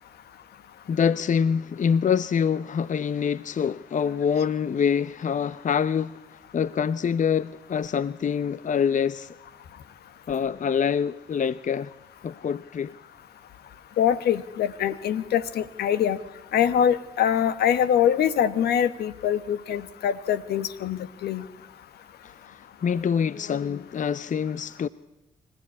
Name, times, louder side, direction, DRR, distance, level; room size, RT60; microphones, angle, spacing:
voice 1, 0.9-6.2 6.5-9.3 10.3-11.9 12.2-12.9 22.2-24.9, left 7 dB, 50° left, 0.7 m, -25 dB
voice 2, 14.0-16.2 16.5-21.4, left 9 dB, 80° left, 1.2 m, -24 dB
25.5 x 15.5 x 8.6 m
hypercardioid pair, 45°, 17 cm